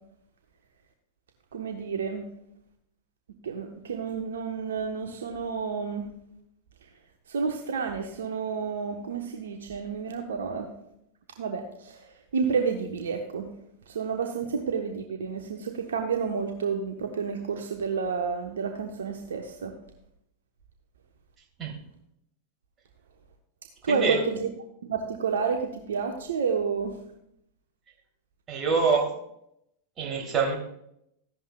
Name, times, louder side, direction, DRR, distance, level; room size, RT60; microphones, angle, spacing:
voice 1, 1.5-2.3 3.4-6.1 7.3-10.7 11.4-12.1 12.3-13.5 13.9-19.7 23.8-24.5 24.8-26.9, right 5 dB, 65° right, 4 dB, 1.1 m, -30 dB
voice 2, 23.9-24.2 28.5-29.1 30.0-30.6, right 5 dB, 25° right, 1 dB, 3.1 m, -25 dB
15.0 x 11.5 x 2.3 m, 0.76 s
figure-of-eight pair, 90°, 0 cm